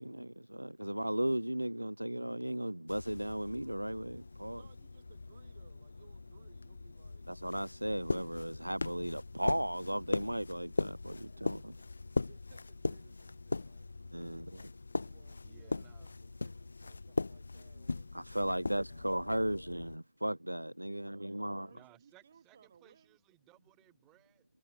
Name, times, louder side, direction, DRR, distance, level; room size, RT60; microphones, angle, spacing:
voice 1, 0.0-4.6 7.3-11.6 14.1-14.4 18.1-21.7, right 1 dB, 90° right, 0.4 m, -36 dB
sound 1, 2.9-20.0, left 3 dB, 80° left, 0.6 m, -40 dB
voice 2, 4.5-7.3 11.2-13.9 14.2-14.7 15.0-19.6 20.8-23.2, right 7 dB, 70° right, 5.5 m, -64 dB
voice 3, 15.4-16.1 20.9-21.1 21.7-24.5, right 19 dB, 40° right, 5.4 m, -64 dB
figure-of-eight pair, 90°, 0 cm